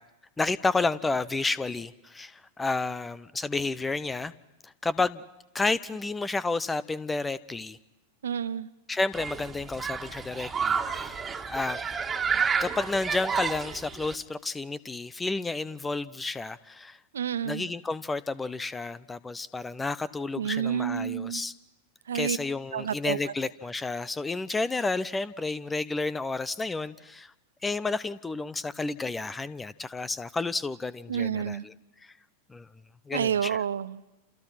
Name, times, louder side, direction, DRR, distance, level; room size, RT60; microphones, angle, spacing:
voice 1, 0.4-4.3 4.6-5.2 5.5-7.8 8.9-11.8 12.6-17.0 17.4-21.5 22.1-27.3 27.6-31.7 32.5-32.7 33.1-33.6, left 3 dB, 10° left, 19 dB, 0.9 m, -31 dB
voice 2, 8.2-8.7 17.1-17.7 20.4-21.4 22.1-22.4 22.7-23.2 31.1-31.6 33.1-34.0, right 8 dB, 65° right, 15 dB, 0.9 m, -29 dB
Human group actions, 9.1-14.1, right 6 dB, 15° right, 2.2 m, -30 dB
30.0 x 28.0 x 5.9 m, 0.97 s
figure-of-eight pair, 90°, 0 cm